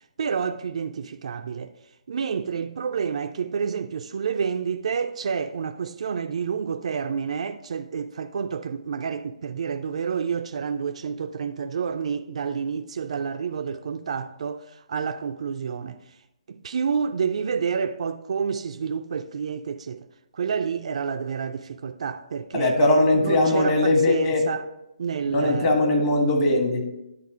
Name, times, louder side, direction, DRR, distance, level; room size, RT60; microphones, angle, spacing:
voice 1, 0.2-1.7 2.1-16.2 16.5-20.1 20.3-22.8 23.1-24.6 25.0-25.7, right 6 dB, 55° right, 0.3 m, -29 dB
voice 2, 22.5-24.4 25.3-26.8, left 2 dB, 35° left, 1.5 m, -20 dB
10.5 x 3.6 x 4.8 m
figure-of-eight pair, 140°, 4 cm